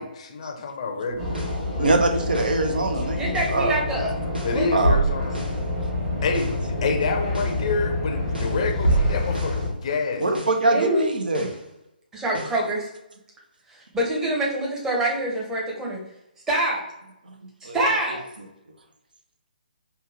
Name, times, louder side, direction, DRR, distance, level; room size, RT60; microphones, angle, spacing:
voice 1, 0.0-2.1 4.4-5.4 6.2-6.5 6.8-10.3, left 4 dB, 40° left, 3 dB, 0.6 m, -28 dB
sound 1, 1.1-1.7 2.3-2.7 3.3-3.7 4.3-5.7 6.3-6.7 7.3-7.7 8.3-9.7 10.3-10.7 11.3-11.7 12.3-12.7, right 2 dB, 85° right, 1.2 m, -27 dB
sound 2, 1.2-9.7, left 2 dB, 30° right, 1.1 m, -28 dB
voice 2, 1.8-3.8 4.7-5.0 6.8-6.9 10.2-11.5 17.3-17.4 17.6-17.8, right 2 dB, 65° right, 5 dB, 0.7 m, -23 dB
voice 3, 3.1-4.1 4.4-4.7 10.7-11.1 12.1-12.9 13.7-16.0 16.5-16.8 17.6-18.2, right 1 dB, 10° right, -3 dB, 0.9 m, -25 dB
5.2 x 2.3 x 3.3 m, 0.87 s
figure-of-eight pair, 135°, 5 cm